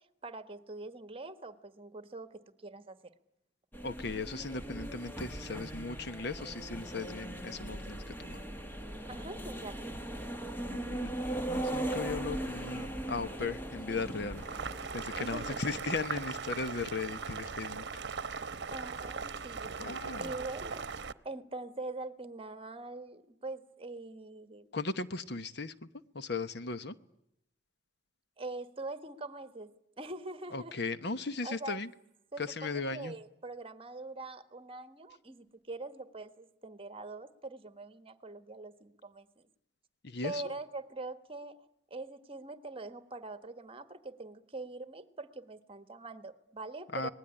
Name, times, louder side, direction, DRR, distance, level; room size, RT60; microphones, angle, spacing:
voice 1, 0.2-3.0 9.1-9.8 15.2-15.6 18.7-24.6 28.4-30.8 31.4-31.8 32.3-39.5 40.2-41.6 41.9-47.1, right 2 dB, 30° right, 11 dB, 1.5 m, -43 dB
sound 1, 3.7-21.1, right 1 dB, 10° left, 1.7 m, -41 dB
voice 2, 3.8-8.4 10.7-14.4 14.9-17.8 19.8-20.3 24.7-25.7 26.1-27.0 30.5-31.9 32.4-33.2 40.0-40.5 46.9-47.1, left 4 dB, 65° left, 12 dB, 1.1 m, -37 dB
Boiling, 14.3-21.1, right 5 dB, 65° right, 0.9 m, -39 dB
26.0 x 20.0 x 10.0 m, 0.80 s
head